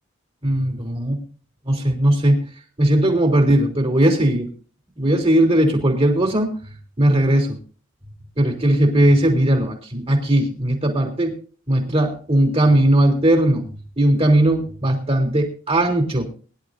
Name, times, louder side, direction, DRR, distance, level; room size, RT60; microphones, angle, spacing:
voice 1, 0.4-1.2 1.6-2.4 2.8-4.5 5.0-7.6 8.4-11.4 11.7-13.6 14.0-16.2, right 1 dB, 30° right, 3 dB, 3.2 m, -18 dB
22.0 x 11.0 x 2.6 m, 0.38 s
head